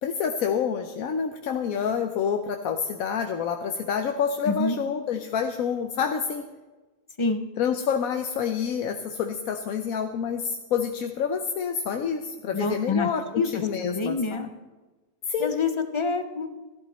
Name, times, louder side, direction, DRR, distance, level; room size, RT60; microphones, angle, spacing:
voice 1, 0.0-6.4 7.6-14.5 15.3-15.5, left 7 dB, 85° left, 6 dB, 1.2 m, -28 dB
voice 2, 4.5-4.8 7.2-7.4 12.5-13.1 13.4-14.5 15.4-16.5, left 4 dB, 25° left, 8 dB, 0.7 m, -26 dB
14.0 x 12.5 x 4.2 m, 1.2 s
omnidirectional pair, 1.4 m